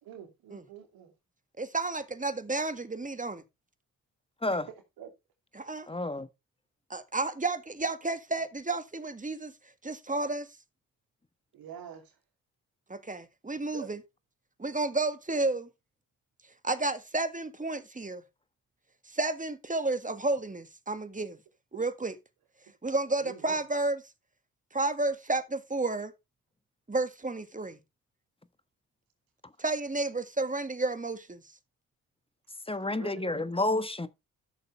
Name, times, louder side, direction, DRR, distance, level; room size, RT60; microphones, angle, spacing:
voice 1, 0.0-1.1 4.6-5.1 11.5-12.2 13.7-13.9 21.7-21.8 23.2-23.6 32.8-33.5, right 9 dB, 80° right, 2.9 m, -45 dB
voice 2, 1.6-3.4 5.5-5.9 6.9-9.5 9.8-10.5 12.9-14.0 14.6-15.7 16.6-18.2 19.0-21.4 21.7-22.1 22.8-24.0 24.7-26.1 26.9-27.8 29.6-31.4, right 2 dB, 20° right, 1.8 m, -31 dB
voice 3, 5.9-6.3 32.7-34.1, left 2 dB, 15° left, 1.3 m, -30 dB
13.0 x 6.7 x 3.3 m
supercardioid pair, 50°, 35 cm